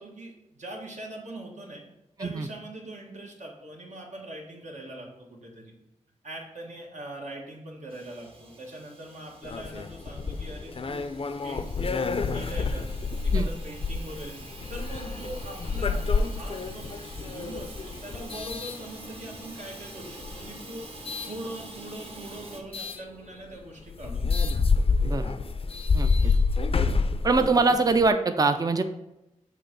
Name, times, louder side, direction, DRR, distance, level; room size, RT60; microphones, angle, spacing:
voice 1, 0.0-1.8 2.2-5.7 6.2-11.2 11.4-11.7 12.1-24.4, right 1 dB, 70° right, -1 dB, 1.5 m, -42 dB
Hiss / Toilet flush / Trickle dribble, 7.9-22.6, right 1 dB, 45° right, 1.4 m, -46 dB
sound 1, 9.4-19.5 20.1-21.4 22.7-23.0 23.5-23.6 23.9-28.1, left 4 dB, 45° left, 0.4 m, -28 dB
voice 2, 25.0-25.3 25.9-26.3 27.2-28.8, right 3 dB, 30° right, 8 dB, 0.4 m, -23 dB
6.7 x 3.4 x 5.2 m, 0.91 s
wide cardioid pair, 85°, 13 cm